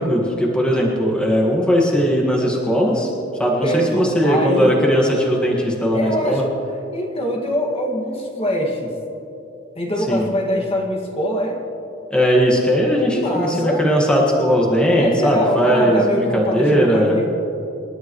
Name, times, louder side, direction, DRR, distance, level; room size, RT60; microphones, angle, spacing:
voice 1, 0.0-3.1 3.4-6.4 10.1-10.3 12.1-17.2, equal, 5° left, -3 dB, 1.7 m, -18 dB
voice 2, 3.6-4.8 5.9-6.5 6.9-9.0 9.8-11.6 13.1-13.8 14.9-17.3, equal, 30° left, -1 dB, 2.0 m, -23 dB
27.5 x 11.5 x 3.2 m, 2.8 s
head